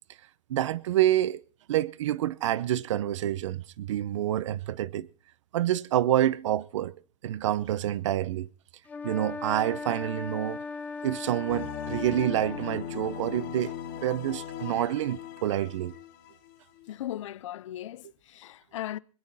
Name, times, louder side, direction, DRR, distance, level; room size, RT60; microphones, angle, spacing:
voice 1, 0.5-1.4 1.7-5.1 5.5-6.9 7.2-8.5 9.0-10.6 11.0-13.7 14.0-15.9, right 12 dB, 65° right, 0.7 m, -27 dB
sound 1, 8.9-12.8, left 4 dB, 10° left, 0.7 m, -38 dB
sound 2, 11.5-16.9, left 9 dB, 40° left, 1.8 m, -39 dB
voice 2, 16.9-19.0, left 13 dB, 70° left, 0.6 m, -37 dB
25.5 x 9.8 x 4.0 m
supercardioid pair, 160°, 16 cm